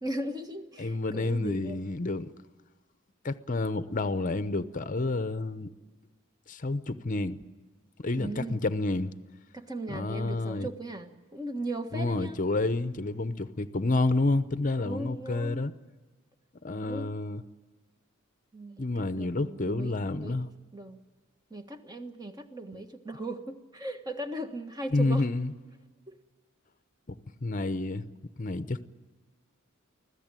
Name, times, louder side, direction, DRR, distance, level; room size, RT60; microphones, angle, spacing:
voice 1, 0.0-1.8 8.2-8.6 9.5-12.4 14.8-15.6 16.7-17.1 18.5-20.4 20.7-21.0 21.5-25.3 26.1-26.2, right 1 dB, 20° right, 1.4 m, -38 dB
voice 2, 0.8-2.3 3.2-5.7 6.5-7.4 8.0-9.1 9.9-10.7 11.9-15.7 16.6-17.4 18.8-20.5 22.7-22.8 24.9-25.5 27.1-27.2 27.4-28.1 28.4-28.9, left 2 dB, 40° left, 0.8 m, -29 dB
25.0 x 16.5 x 9.0 m
head